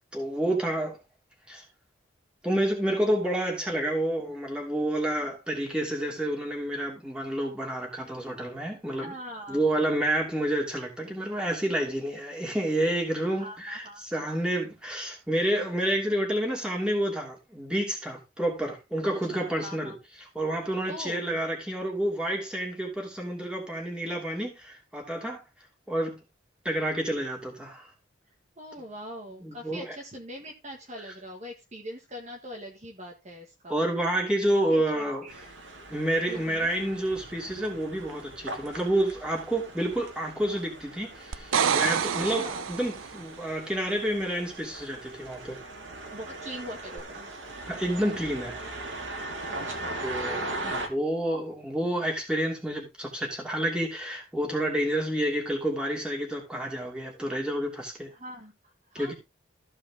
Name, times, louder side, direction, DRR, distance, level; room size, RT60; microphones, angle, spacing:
voice 1, 0.1-1.0 1.5-1.6 2.4-9.1 9.5-20.0 20.3-25.4 25.9-26.2 26.6-27.9 29.4-30.0 33.7-35.2 35.9-45.6 47.7-48.6 50.0-58.1 58.9-59.1, right 1 dB, 5° right, 2.8 m, -29 dB
voice 2, 8.9-9.6 13.4-14.0 19.3-19.9 20.8-21.4 28.6-33.8 34.7-35.5 36.3-36.7 42.3-42.7 46.1-47.3 49.6-50.8 58.1-59.1, equal, 35° right, 1.6 m, -42 dB
sound 1, 35.3-50.9, right 2 dB, 70° right, 2.2 m, -39 dB
sound 2, 41.3-43.2 47.0-47.1, right 7 dB, 90° right, 0.6 m, -27 dB
14.5 x 5.1 x 3.6 m
head